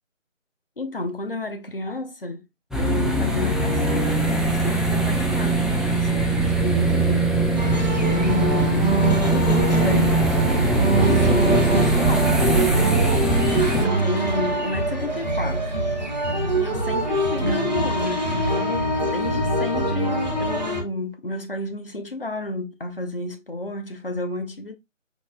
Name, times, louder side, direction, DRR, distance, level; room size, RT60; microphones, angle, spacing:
voice 1, 0.8-2.5 2.7-7.3 7.6-10.3 10.5-12.8 13.5-15.8 16.6-24.7, left 2 dB, 45° left, 0.7 m, -31 dB
sound 1, 2.7-13.8, right 2 dB, ahead, 0.4 m, -21 dB
sound 2, 7.6-20.8, right 1 dB, 35° right, 0.7 m, -24 dB
5.2 x 2.6 x 2.3 m
figure-of-eight pair, 175°, 39 cm